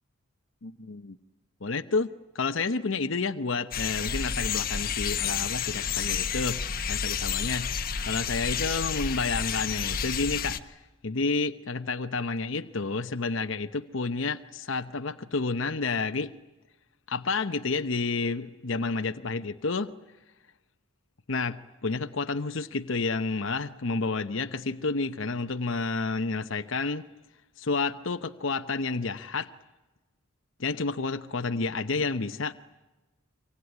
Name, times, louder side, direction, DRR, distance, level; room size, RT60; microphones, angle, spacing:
voice 1, 0.6-1.2 1.6-2.1 2.3-16.3 17.1-19.9 21.3-27.1 27.6-29.5 30.6-32.5, left 4 dB, 65° left, 9 dB, 0.9 m, -30 dB
sound 1, 3.7-10.6, left 7 dB, 45° left, 1.1 m, -30 dB
25.0 x 24.5 x 9.7 m, 1.1 s
head